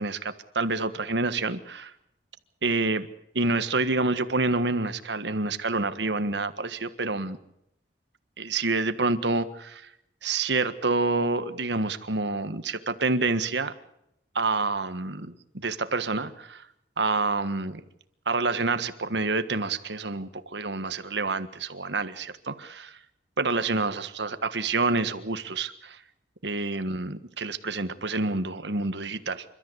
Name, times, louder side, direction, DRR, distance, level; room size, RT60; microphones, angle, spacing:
voice 1, 0.0-1.9 2.6-3.1 3.3-7.4 8.4-9.9 10.2-13.7 14.3-16.6 17.0-17.8 18.2-23.0 23.4-26.0 26.4-29.4, right 3 dB, 75° right, 11 dB, 1.5 m, -28 dB
29.0 x 13.5 x 8.2 m, 0.79 s
head